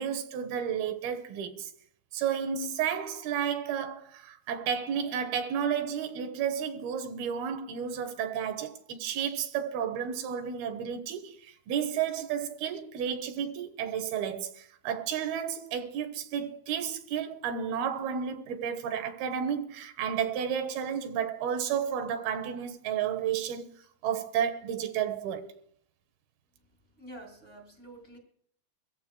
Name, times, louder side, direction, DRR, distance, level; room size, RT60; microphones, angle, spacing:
voice 1, 0.0-1.7 2.1-25.6, right 8 dB, 85° right, 2.9 m, -32 dB
voice 2, 27.0-28.2, right 1 dB, 20° left, 2.9 m, -48 dB
24.5 x 15.0 x 2.2 m
omnidirectional pair, 4.3 m